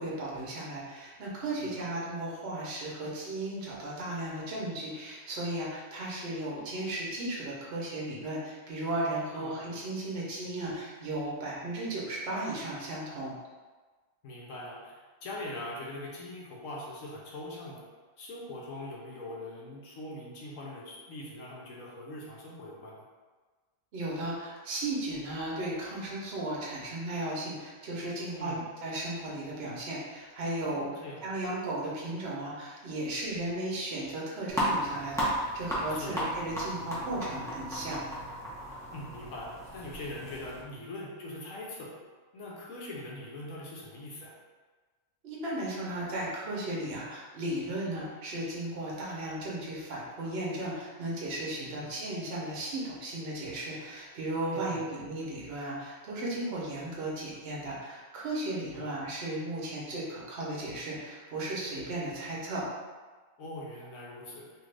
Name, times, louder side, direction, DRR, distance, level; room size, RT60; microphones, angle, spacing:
voice 1, 0.0-13.3 23.9-30.8 31.2-38.0 45.2-62.6, right 1 dB, 55° right, -5 dB, 1.0 m, -35 dB
voice 2, 14.2-17.8 18.2-23.0 28.3-28.6 30.6-31.2 35.9-36.2 38.9-41.9 42.3-44.3 51.6-51.9 54.5-54.8 58.7-58.9 63.4-64.5, left 1 dB, 75° left, -4 dB, 1.1 m, -42 dB
sound 1, 34.5-40.6, equal, 5° left, 0.4 m, -34 dB
2.9 x 2.5 x 3.2 m, 1.4 s
omnidirectional pair, 1.4 m